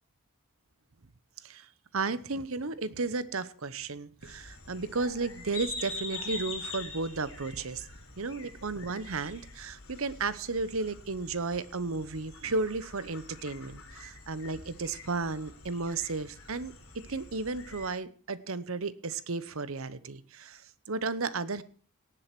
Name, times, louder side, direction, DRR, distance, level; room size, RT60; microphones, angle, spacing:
voice 1, 1.4-7.9 8.2-21.6, right 3 dB, 70° right, 16 dB, 0.9 m, -34 dB
sound 1, 4.2-17.9, left 3 dB, 70° left, 3.5 m, -45 dB
18.0 x 7.7 x 6.0 m, 0.43 s
head